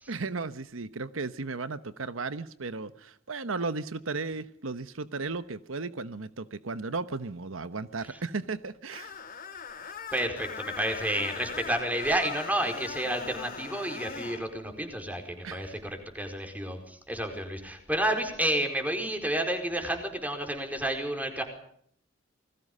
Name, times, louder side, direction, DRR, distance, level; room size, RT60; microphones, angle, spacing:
voice 1, 0.1-9.2 15.4-15.8, right 3 dB, 85° right, 13 dB, 1.0 m, -35 dB
Screech, 8.9-14.4, left 6 dB, 45° left, 3.2 m, -40 dB
voice 2, 10.1-21.4, right 1 dB, 10° right, 5 dB, 4.7 m, -30 dB
28.5 x 20.5 x 5.5 m, 0.66 s
head